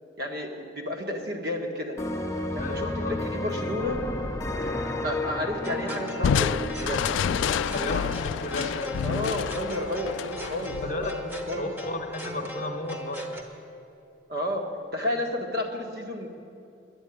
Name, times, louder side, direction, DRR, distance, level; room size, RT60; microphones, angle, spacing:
voice 1, 0.2-2.0 2.5-4.0 5.0-7.0 9.0-11.7 14.3-14.7 14.9-16.3, left 1 dB, 55° right, 2 dB, 1.5 m, -31 dB
sound 1, 2.0-9.6, left 1 dB, 15° left, 0.7 m, -33 dB
voice 2, 2.6-3.1 7.6-9.2 10.8-11.1 11.6-13.3, left 2 dB, 40° left, 4 dB, 1.0 m, -34 dB
sound 2, 5.6-13.4, equal, 10° right, 1.1 m, -38 dB
Crushing, 6.2-11.6, left 7 dB, 75° left, 0.3 m, -29 dB
11.0 x 8.9 x 9.8 m, 2.6 s
head